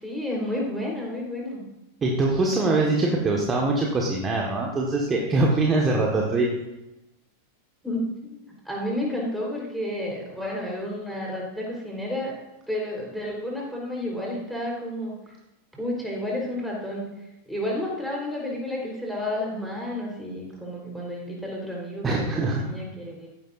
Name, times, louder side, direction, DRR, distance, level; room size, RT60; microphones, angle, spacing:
voice 1, 0.0-1.6 7.8-12.3 12.7-15.2 15.7-17.0 17.5-23.3, left 1 dB, ahead, -3 dB, 4.1 m, -31 dB
voice 2, 2.0-6.5 22.0-22.6, right 2 dB, 20° right, -1 dB, 1.5 m, -23 dB
15.0 x 10.5 x 2.6 m, 0.97 s
figure-of-eight pair, 90°, 0 cm